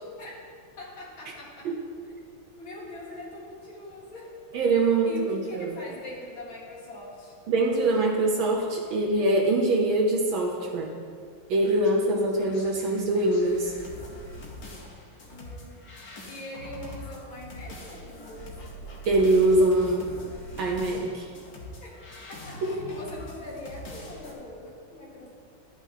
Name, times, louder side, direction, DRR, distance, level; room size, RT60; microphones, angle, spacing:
voice 1, 0.8-1.7 2.6-4.3 5.0-7.3 15.3-15.8 16.2-18.5 21.8-25.3, left 2 dB, 75° left, -5 dB, 2.7 m, -42 dB
voice 2, 4.5-5.8 7.5-11.0 11.5-13.7 19.1-20.1 20.6-21.3 22.6-22.8, right 2 dB, 80° right, -1 dB, 1.6 m, -23 dB
sound 1, 11.6-24.3, left 1 dB, 50° left, 1.7 m, -43 dB
11.5 x 8.9 x 2.8 m, 2.1 s
omnidirectional pair, 2.2 m